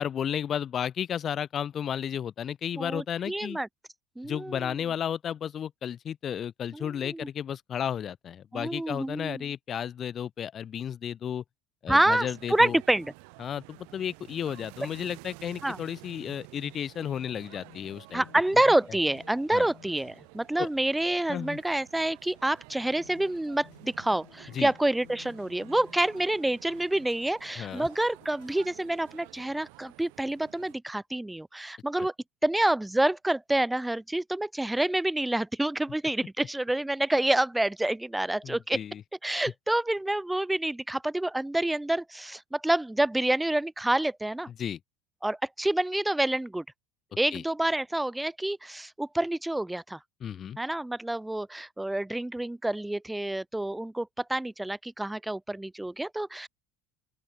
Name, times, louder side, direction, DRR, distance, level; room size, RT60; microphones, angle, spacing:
voice 1, 0.0-3.6 4.2-11.4 11.8-12.8 13.4-18.2 19.5-19.7 20.6-20.7 21.3-21.6 24.5-24.7 27.6-27.9 38.4-39.0 44.6-44.8 47.3-47.4 50.2-50.6, left 9 dB, 40° left, 1.0 m, -33 dB
voice 2, 2.8-3.7 4.2-4.7 6.7-7.3 8.5-9.4 11.9-13.1 15.6-15.8 18.1-32.1 32.4-38.8 39.2-44.5 45.2-46.6 47.2-50.0 50.6-56.5, right 1 dB, 5° right, 0.5 m, -28 dB
sound 1, 12.0-30.7, right 39 dB, 70° right, 3.6 m, -52 dB
sound 2, 17.0-20.4 21.1-21.5 22.2-22.6 23.0-26.4 27.1-27.5 27.8-29.2, left 38 dB, 70° left, 6.5 m, -57 dB
open air
hypercardioid pair, 85°, 0 cm